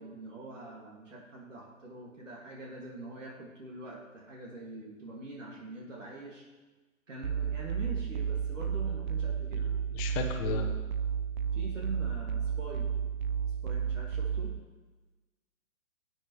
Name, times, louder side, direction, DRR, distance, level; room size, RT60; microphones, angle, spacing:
voice 1, 0.0-6.4 7.1-9.6 10.3-10.8 11.5-12.9 13.6-14.5, right 2 dB, 65° right, -2 dB, 2.3 m, -44 dB
sound 1, 7.2-14.6, right 7 dB, 35° right, 0.4 m, -32 dB
voice 2, 9.6-10.6, left 6 dB, 20° left, 4 dB, 1.0 m, -35 dB
17.5 x 9.1 x 3.2 m, 1.2 s
figure-of-eight pair, 125°, 40 cm